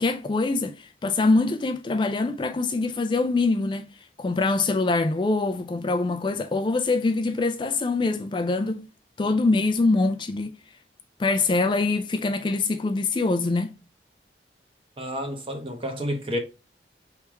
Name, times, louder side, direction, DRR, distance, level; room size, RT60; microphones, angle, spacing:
voice 1, 0.0-8.9 9.2-10.6 11.2-13.8, left 3 dB, 25° left, 0.3 m, -24 dB
voice 2, 15.0-16.4, equal, 30° right, 1.0 m, -30 dB
4.7 x 3.4 x 3.0 m
head